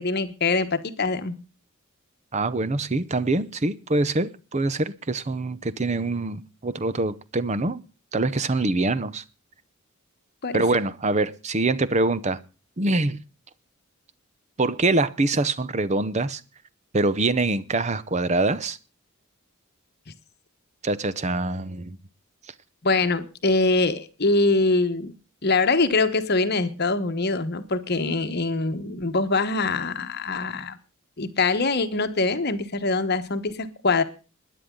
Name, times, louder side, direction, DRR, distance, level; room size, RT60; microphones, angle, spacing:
voice 1, 0.0-1.4 10.4-10.6 22.8-25.1 25.4-30.8 31.2-34.0, left 3 dB, 50° left, 1.2 m, -23 dB
voice 2, 2.3-7.8 8.1-9.2 10.5-12.4 12.8-13.2 14.6-16.4 16.9-18.8 20.8-22.0, right 2 dB, 30° right, 0.7 m, -24 dB
20.5 x 10.5 x 3.8 m
head